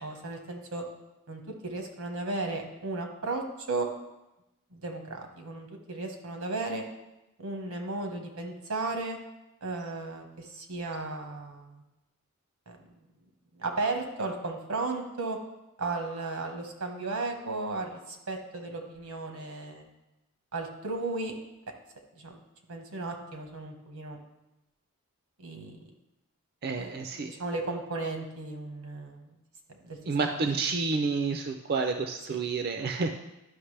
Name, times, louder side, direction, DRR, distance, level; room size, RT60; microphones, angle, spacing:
voice 1, 0.0-0.8 1.3-3.9 4.7-6.8 7.4-9.2 9.6-11.8 12.7-13.1 13.5-15.4 15.8-19.9 20.5-21.3 22.2-22.4 22.7-24.2 25.4-25.8 26.8-29.3 29.7-30.0, right 3 dB, 85° right, 4 dB, 1.3 m, -35 dB
voice 2, 26.6-27.3 30.1-33.1, right 4 dB, 45° right, 5 dB, 0.5 m, -29 dB
11.5 x 5.8 x 3.3 m, 0.94 s
head